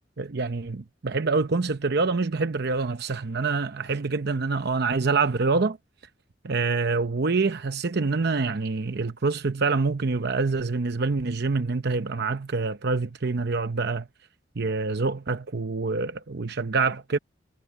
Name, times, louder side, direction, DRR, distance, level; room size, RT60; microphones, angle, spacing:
voice 1, 0.2-5.8 6.4-14.1 14.6-17.2, right 4 dB, 60° right, 0.8 m, -26 dB
head